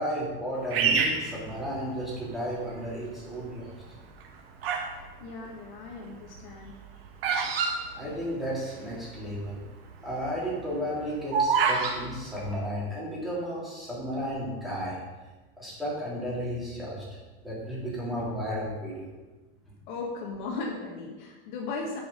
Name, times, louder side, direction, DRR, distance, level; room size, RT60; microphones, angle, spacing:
voice 1, 0.0-3.7 7.9-9.6 10.0-15.0 15.6-17.0 17.4-19.1, equal, ahead, -8 dB, 3.0 m, -33 dB
Bird vocalization bird call bird song, 0.7-2.2 2.8-3.3 4.0-5.0 5.2-8.7 9.0-9.1 9.3-9.6 10.1-12.0, right 5 dB, 85° right, 1.8 m, -27 dB
voice 2, 4.9-6.7 19.9-22.0, left 3 dB, 55° left, 0 dB, 1.6 m, -37 dB
10.5 x 5.4 x 5.4 m, 1.2 s
supercardioid pair, 160°, 29 cm